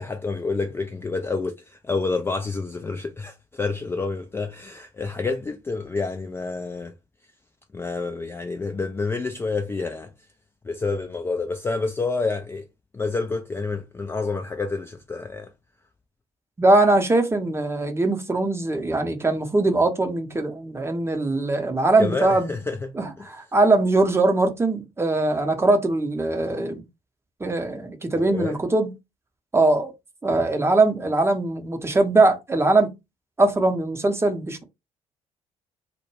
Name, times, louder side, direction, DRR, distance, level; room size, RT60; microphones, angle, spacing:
voice 1, 0.0-6.9 7.7-10.1 10.6-12.6 12.9-15.5 22.0-22.8 23.2-23.3 28.3-28.6, left 3 dB, 15° left, 0.3 m, -28 dB
voice 2, 16.6-22.5 22.9-26.8 27.4-28.9 29.5-29.9 30.2-32.9 33.4-34.6, right 2 dB, 15° right, 0.7 m, -21 dB
2.1 x 2.1 x 3.1 m
figure-of-eight pair, 50°, 17 cm